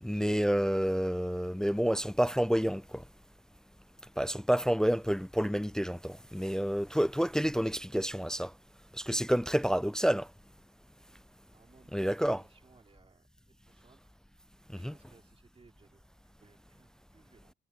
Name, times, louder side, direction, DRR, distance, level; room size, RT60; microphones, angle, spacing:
voice 1, 0.0-3.0 4.2-8.5 8.9-10.3 11.9-12.4 14.7-14.9, equal, 5° left, 0.3 m, -29 dB
voice 2, 11.5-12.1 12.4-13.3 13.7-14.1 14.7-17.5, right 4 dB, 30° right, 3.8 m, -63 dB
cardioid pair, 90°, 20 cm